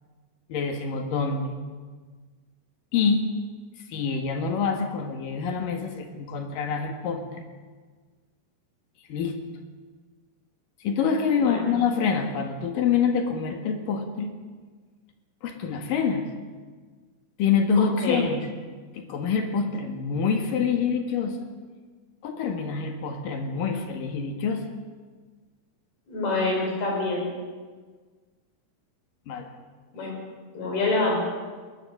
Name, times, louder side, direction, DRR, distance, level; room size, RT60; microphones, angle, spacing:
voice 1, 0.5-1.6 2.9-3.3 3.9-7.4 9.1-9.4 10.8-14.3 15.4-16.2 17.4-18.4 18.9-21.5 22.2-24.6 29.3-29.5, left 6 dB, 65° left, 5 dB, 3.2 m, -26 dB
voice 2, 11.4-11.7 18.0-18.2 26.1-27.3 29.9-30.2 30.6-31.2, left 2 dB, 90° left, 0 dB, 7.0 m, -26 dB
20.5 x 19.5 x 6.6 m, 1.5 s
omnidirectional pair, 4.3 m